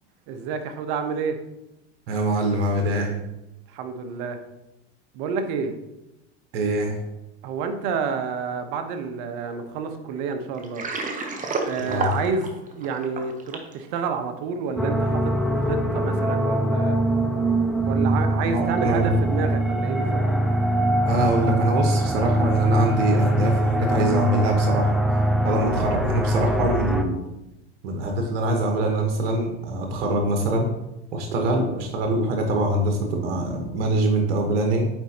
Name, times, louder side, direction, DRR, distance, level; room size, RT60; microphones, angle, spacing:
voice 1, 0.3-1.4 3.7-4.4 5.1-5.7 7.4-10.9 11.6-17.0 17.8-20.2, right 5 dB, 60° right, 7 dB, 0.9 m, -29 dB
voice 2, 2.1-3.1 6.5-7.0 11.8-12.1 18.4-19.1 21.0-24.9 25.4-27.2 27.8-30.7 31.1-34.9, right 1 dB, 80° right, 3 dB, 1.1 m, -24 dB
Water, 10.6-13.7, right 3 dB, 25° right, 0.9 m, -30 dB
sound 1, 14.8-27.0, right 1 dB, ahead, 0.3 m, -22 dB
9.0 x 4.3 x 2.8 m, 0.93 s
supercardioid pair, 115°, 34 cm